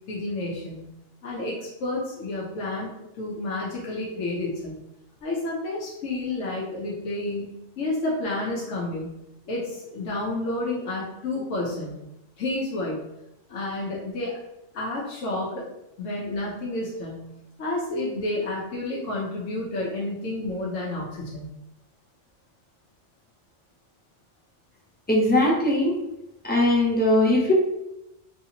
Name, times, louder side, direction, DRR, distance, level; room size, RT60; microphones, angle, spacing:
voice 1, 0.1-0.9 1.2-2.9 3.2-4.8 5.2-7.5 7.8-9.2 9.5-12.0 12.4-13.0 13.5-14.4 14.7-15.7 16.0-17.3 17.6-21.5, left 2 dB, 80° left, -4 dB, 1.0 m, -30 dB
voice 2, 25.1-26.0 26.4-27.5, left 1 dB, 15° left, -4 dB, 0.4 m, -20 dB
3.1 x 2.6 x 2.8 m, 0.90 s
omnidirectional pair, 1.3 m